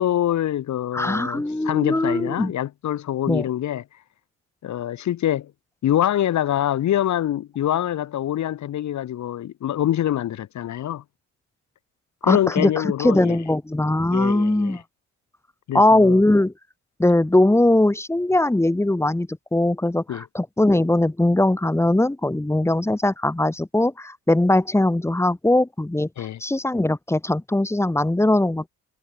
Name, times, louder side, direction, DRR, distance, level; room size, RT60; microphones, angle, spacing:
voice 1, 0.0-3.8 4.6-5.5 5.8-11.0 12.2-13.4 14.1-14.8 15.7-16.2 20.1-20.2 26.2-26.4, left 11 dB, 65° left, 1.8 m, -25 dB
voice 2, 0.9-2.5 3.3-3.5 12.2-12.7 13.0-14.8 15.7-16.5 17.0-28.7, left 1 dB, 10° left, 3.5 m, -20 dB
cardioid pair, 115°, 30 cm